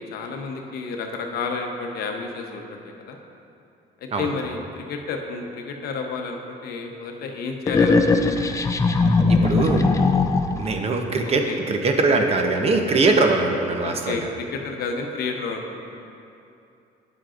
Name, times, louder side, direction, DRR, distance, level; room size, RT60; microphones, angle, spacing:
voice 1, 0.0-3.2 4.2-8.3 11.5-11.6 13.8-15.8, left 4 dB, 70° left, 3 dB, 0.8 m, -31 dB
sound 1, 7.7-10.7, left 3 dB, 20° left, 0.4 m, -19 dB
voice 2, 9.3-9.9 10.5-14.3, right 3 dB, 35° right, 4 dB, 0.7 m, -22 dB
9.5 x 7.6 x 2.5 m, 2.7 s
cardioid pair, 110°, 17 cm